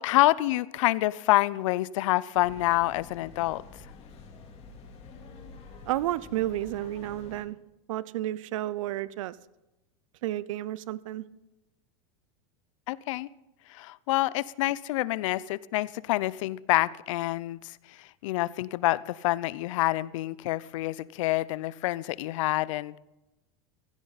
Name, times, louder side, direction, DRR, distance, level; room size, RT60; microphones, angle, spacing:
voice 1, 0.0-3.6 12.9-13.3 13.7-23.0, left 17 dB, 70° left, 20 dB, 0.6 m, -27 dB
sound 1, 2.3-7.4, left 4 dB, 35° left, 3.2 m, -48 dB
voice 2, 5.9-7.6 7.9-9.3 10.2-11.2, right 14 dB, 75° right, 19 dB, 0.6 m, -31 dB
16.0 x 16.0 x 4.1 m, 0.96 s
supercardioid pair, 120°, 17 cm